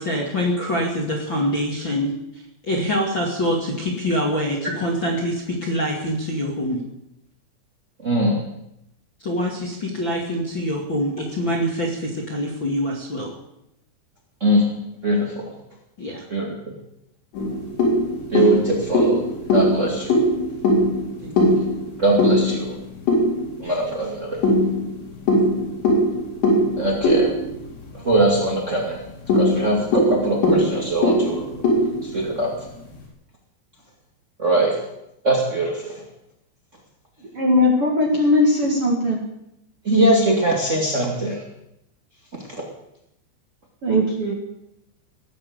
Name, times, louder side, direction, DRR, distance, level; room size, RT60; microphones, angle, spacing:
voice 1, 0.0-2.1 2.6-6.8 9.2-13.3 16.0-16.2 21.2-21.6, equal, 40° left, -2 dB, 1.7 m, -25 dB
voice 2, 8.0-8.4 14.4-14.7 15.0-15.4 16.3-16.5 18.3-20.2 22.0-22.7 23.6-24.5 26.8-27.3 28.0-29.0 29.3-31.4 32.0-32.5 34.4-34.8 35.2-36.0 39.8-41.4, right 1 dB, 60° right, -2 dB, 0.7 m, -21 dB
sound 1, 17.3-23.8 24.4-28.3 28.6-28.7 29.1-32.7, left 1 dB, 60° left, 6.2 m, -21 dB
voice 3, 37.3-39.2 43.8-44.3, left 1 dB, 45° right, -1 dB, 2.0 m, -19 dB
18.5 x 9.1 x 8.0 m, 0.83 s
omnidirectional pair, 5.7 m